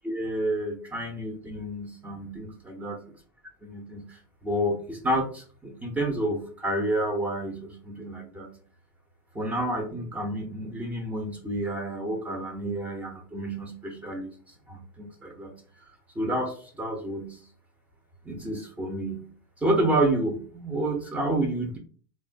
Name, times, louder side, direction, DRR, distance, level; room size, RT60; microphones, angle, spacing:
voice 1, 0.0-3.0 3.6-8.5 9.3-17.4 18.2-19.3 19.6-21.8, right 1 dB, 10° right, 2 dB, 0.6 m, -30 dB
3.1 x 2.2 x 2.5 m, 0.43 s
hypercardioid pair, 110°, 12 cm